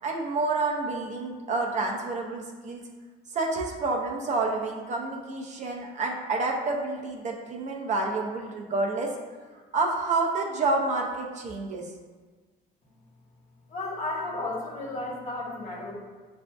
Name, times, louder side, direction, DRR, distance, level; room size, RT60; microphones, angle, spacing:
voice 1, 0.0-2.8 3.3-9.1 9.7-11.9, right 3 dB, 45° right, 1 dB, 0.6 m, -29 dB
voice 2, 13.7-15.9, left 2 dB, 45° left, -2 dB, 1.1 m, -33 dB
6.6 x 2.6 x 2.3 m, 1.4 s
cardioid pair, 110°, 17 cm